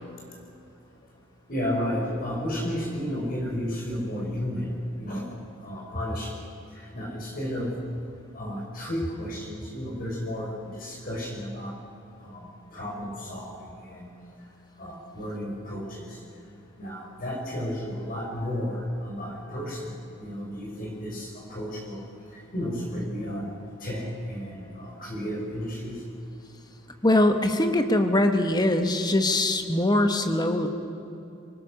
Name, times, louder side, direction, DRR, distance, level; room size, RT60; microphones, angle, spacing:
voice 1, 1.5-5.3 5.6-6.4 6.8-7.7 8.3-11.7 12.2-13.5 13.8-14.1 14.8-16.2 16.8-22.0 22.5-23.5 23.8-26.0, equal, 45° left, -2 dB, 5.8 m, -33 dB
voice 2, 27.0-30.7, left 1 dB, 20° left, 7 dB, 1.3 m, -22 dB
23.5 x 20.0 x 6.6 m, 2.9 s
head